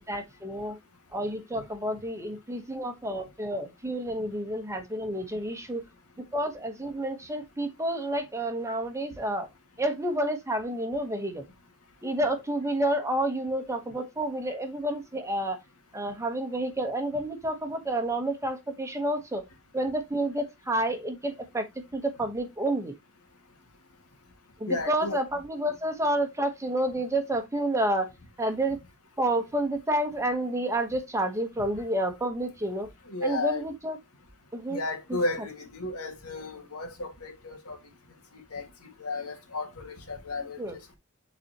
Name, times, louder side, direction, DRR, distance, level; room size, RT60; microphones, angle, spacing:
voice 1, 0.1-0.8 1.1-5.8 6.3-9.5 9.8-11.4 12.0-15.6 15.9-19.4 19.7-21.7 21.9-22.9 24.6-28.1 28.4-28.8 29.2-32.9 33.2-34.0 34.5-34.8 35.1-35.2 40.6-40.8, right 1 dB, 15° right, 1.1 m, -29 dB
voice 2, 24.7-25.2 33.1-33.7 34.7-37.9 38.3-40.8, left 2 dB, 80° left, 2.0 m, -34 dB
9.4 x 4.2 x 2.9 m
head